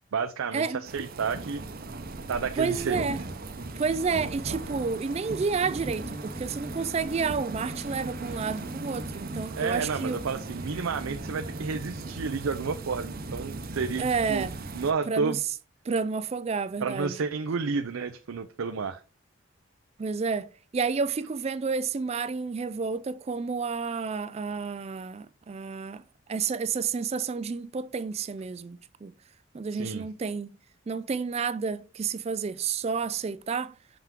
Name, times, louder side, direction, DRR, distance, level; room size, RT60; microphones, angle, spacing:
voice 1, 0.1-1.6 2.3-3.0 9.6-14.5 14.7-15.4 16.8-19.0 29.7-30.0, right 5 dB, 85° right, 0.5 m, -31 dB
sound 1, 0.8-14.9, right 2 dB, 45° right, 0.7 m, -38 dB
voice 2, 2.6-3.2 3.8-10.2 14.0-14.5 15.1-15.4 15.9-17.2 20.0-26.0 26.3-29.1 29.5-30.5 30.9-33.8, right 5 dB, 30° right, 0.3 m, -30 dB
sound 2, 5.6-13.8, right 1 dB, 5° right, 0.7 m, -45 dB
6.0 x 5.7 x 3.6 m
head